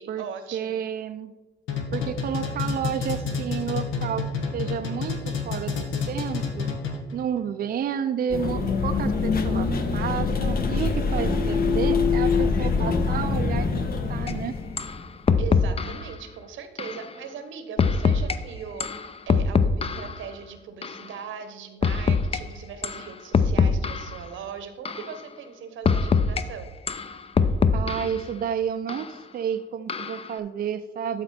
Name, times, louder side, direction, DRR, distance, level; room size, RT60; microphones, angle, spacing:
voice 1, 0.0-0.8 15.4-26.7, right 6 dB, 80° right, 9 dB, 1.0 m, -39 dB
voice 2, 0.5-1.3 1.9-4.3 4.5-6.7 7.1-9.7 9.9-14.5 27.7-31.2, right 8 dB, 50° right, 7 dB, 0.4 m, -31 dB
sound 1, 1.7-7.2, left 5 dB, 85° left, 1.2 m, -29 dB
sound 2, 8.3-15.2, left 4 dB, 50° left, 1.0 m, -24 dB
sound 3, 14.3-14.4 14.8-15.0 15.3-16.0 16.8-17.0 17.8-18.3 18.8-20.2 20.8-21.0 21.8-22.4 22.8-23.0 23.3-24.2 24.8-25.1 25.8-26.4 26.9-28.2 28.9-29.0 29.9-30.3, left 5 dB, 30° left, 0.5 m, -23 dB
12.0 x 4.3 x 4.3 m, 1.2 s
cardioid pair, 90°, 20 cm